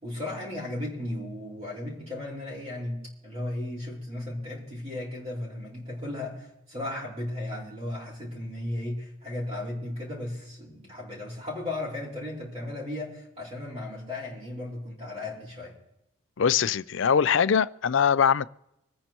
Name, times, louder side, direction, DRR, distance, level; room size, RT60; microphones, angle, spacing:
voice 1, 0.0-15.7, left 1 dB, 30° right, 4.7 m, -35 dB
voice 2, 16.4-18.5, left 7 dB, 60° left, 0.4 m, -22 dB
26.5 x 9.6 x 3.0 m
head